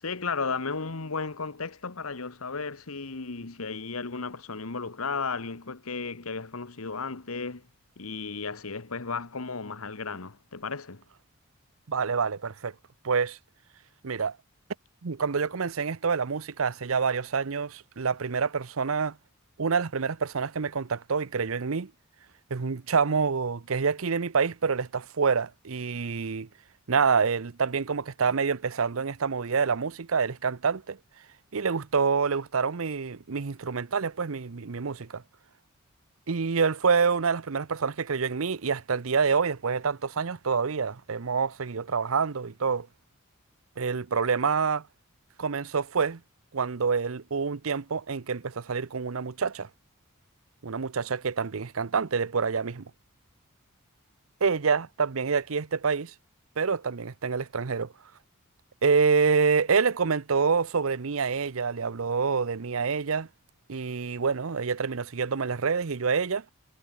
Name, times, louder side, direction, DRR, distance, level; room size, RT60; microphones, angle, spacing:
voice 1, 0.0-7.7 8.0-11.0, left 4 dB, 90° left, 1.4 m, -34 dB
voice 2, 11.9-12.7 13.0-13.4 14.0-14.4 15.0-19.2 19.6-21.9 22.5-26.5 26.9-31.0 31.5-35.2 36.3-42.9 43.8-44.8 45.4-46.2 46.5-49.7 50.6-52.9 54.4-56.1 56.6-57.9 58.8-63.3 63.7-66.4, right 5 dB, 70° right, 0.7 m, -27 dB
head